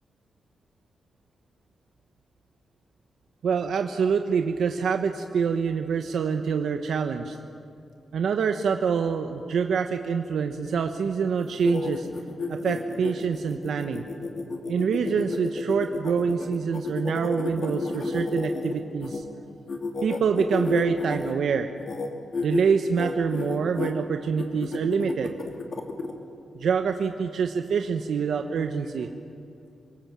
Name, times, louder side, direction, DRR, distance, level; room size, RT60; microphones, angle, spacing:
voice 1, 3.4-7.4 8.1-12.1 12.5-14.0 14.7-19.2 20.0-21.7 22.4-25.3 26.6-29.1, right 6 dB, 75° right, 6 dB, 1.1 m, -26 dB
sound 1, 11.4-19.2 19.7-21.3 21.8-22.1 22.3-22.6 22.9-23.9 24.4-26.1, left 3 dB, 50° left, 2.5 m, -31 dB
26.0 x 23.5 x 7.5 m, 2.5 s
wide cardioid pair, 140°, 0 cm